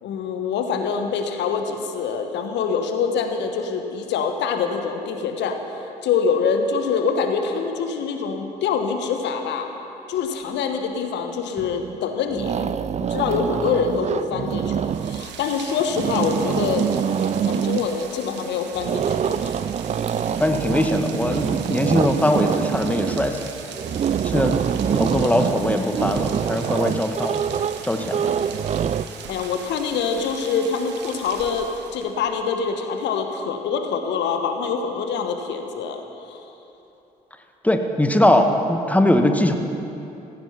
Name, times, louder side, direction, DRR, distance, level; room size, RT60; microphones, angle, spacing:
voice 1, 0.0-5.6 6.0-9.8 10.1-12.7 13.0-16.9 17.5-19.5 29.3-36.4, left 6 dB, 65° left, 6 dB, 1.2 m, -25 dB
sound 1, 11.6-12.0 12.3-15.3 15.8-17.9 18.8-29.1, right 8 dB, 35° right, 0.5 m, -25 dB
Rain, 14.8-32.2, right 7 dB, 65° right, 1.4 m, -40 dB
voice 2, 20.4-23.4 24.2-24.6 24.9-27.3 27.8-28.3 37.6-39.5, left 1 dB, 5° left, 5 dB, 1.5 m, -21 dB
16.0 x 15.5 x 5.8 m, 2.9 s
figure-of-eight pair, 45°, 20 cm